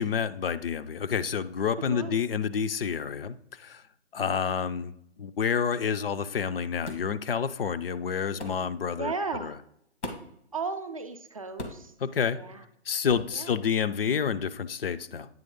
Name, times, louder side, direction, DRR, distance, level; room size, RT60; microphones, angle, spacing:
voice 1, 0.0-3.8 4.1-9.5 12.0-12.4 12.9-15.3, left 7 dB, 55° left, 12 dB, 0.5 m, -29 dB
voice 2, 1.9-2.2 9.0-9.6 10.5-11.9 12.3-12.6 13.3-13.5, right 4 dB, 30° right, 6 dB, 0.4 m, -35 dB
sound 1, 6.8-7.1 8.4-8.6 10.0-10.4 11.6-11.9 13.1-13.3, left 2 dB, 80° left, 1.6 m, -38 dB
9.0 x 3.1 x 5.2 m, 0.72 s
hypercardioid pair, 150°, 34 cm